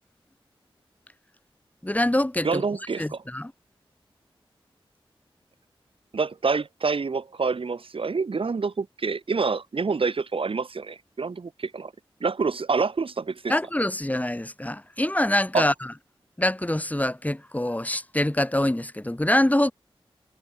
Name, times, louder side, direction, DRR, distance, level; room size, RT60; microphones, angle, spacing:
voice 1, 1.8-2.6 3.0-3.5 13.5-15.9 16.4-19.7, left 1 dB, 15° left, 5.2 m, -25 dB
voice 2, 2.4-3.2 6.1-11.9 12.2-13.5 15.5-15.7, right 4 dB, 70° right, 1.9 m, -27 dB
cardioid pair, 55°, 10 cm